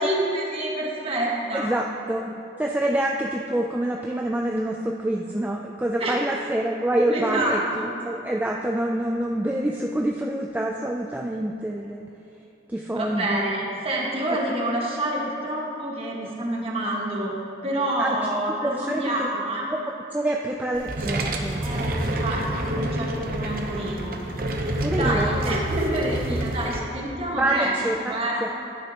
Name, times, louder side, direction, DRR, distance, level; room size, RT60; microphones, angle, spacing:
voice 1, 0.0-1.7 6.0-6.2 7.1-7.9 12.9-19.7 21.6-24.5 24.9-27.8 28.1-28.5, right 1 dB, 35° right, -3 dB, 1.5 m, -28 dB
voice 2, 1.5-2.3 2.6-12.0 12.7-13.5 18.0-18.2 18.6-19.3 19.7-19.8 20.1-22.2 24.8-25.6 26.8-26.9 27.4-28.0 28.4-28.5, right 1 dB, 10° right, 0 dB, 0.3 m, -26 dB
sound 1, 20.7-26.8, right 1 dB, 55° right, 0.7 m, -28 dB
11.5 x 9.9 x 2.9 m, 2.9 s
head